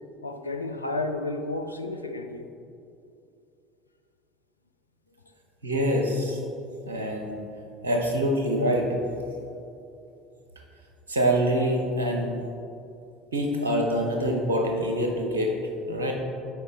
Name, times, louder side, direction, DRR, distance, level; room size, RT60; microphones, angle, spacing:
voice 1, 0.2-2.5, left 2 dB, 90° left, 5 dB, 0.4 m, -32 dB
voice 2, 5.6-6.4 6.9-7.4 7.8-9.0 11.1-12.4 13.3-15.5 15.9-16.1, equal, 80° right, 1 dB, 0.9 m, -25 dB
8.0 x 4.7 x 4.0 m, 2.6 s
figure-of-eight pair, 65°, 0 cm